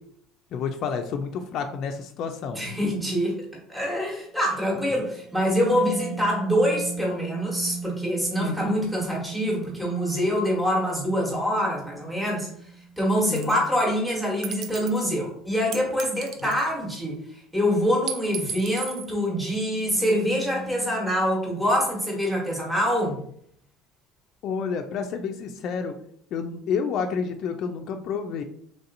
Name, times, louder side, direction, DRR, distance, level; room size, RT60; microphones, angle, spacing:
voice 1, 0.5-2.6 8.4-8.8 13.3-13.6 16.4-16.5 24.4-25.9 26.3-28.4, left 6 dB, 55° left, 5 dB, 0.3 m, -29 dB
voice 2, 2.5-3.4 3.7-12.5 13.0-17.2 17.5-23.2, equal, 5° right, -3 dB, 1.1 m, -25 dB
sound 1, 4.8-14.1 19.6-22.2, right 4 dB, 20° right, 0.7 m, -39 dB
sound 2, 13.4-13.7 14.4-15.1 15.7-17.0 18.1-19.1, right 7 dB, 60° right, 0.4 m, -35 dB
3.2 x 2.7 x 2.5 m, 0.65 s
supercardioid pair, 110°, 0 cm